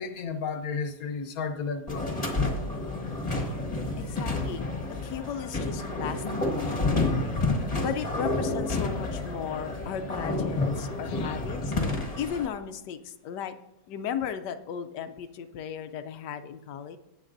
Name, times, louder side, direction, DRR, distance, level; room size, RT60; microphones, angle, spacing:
voice 1, 0.0-2.1 11.1-11.4, left 5 dB, 60° left, 7 dB, 1.3 m, -33 dB
sound 1, 1.9-12.5, left 2 dB, 25° left, 1.5 m, -29 dB
voice 2, 4.0-4.7 5.0-7.4 7.8-11.7 12.1-13.5 13.9-17.0, left 8 dB, 80° left, 9 dB, 1.2 m, -36 dB
17.5 x 7.4 x 2.6 m, 0.88 s
omnidirectional pair, 1.8 m